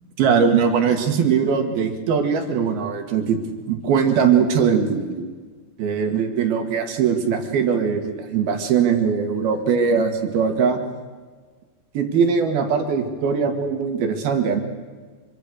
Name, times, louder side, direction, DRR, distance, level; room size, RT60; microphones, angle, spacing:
voice 1, 0.2-3.4 3.7-5.3 5.8-10.8 11.9-14.6, right 6 dB, 60° right, 5 dB, 3.8 m, -20 dB
25.5 x 24.0 x 6.6 m, 1.5 s
omnidirectional pair, 5.2 m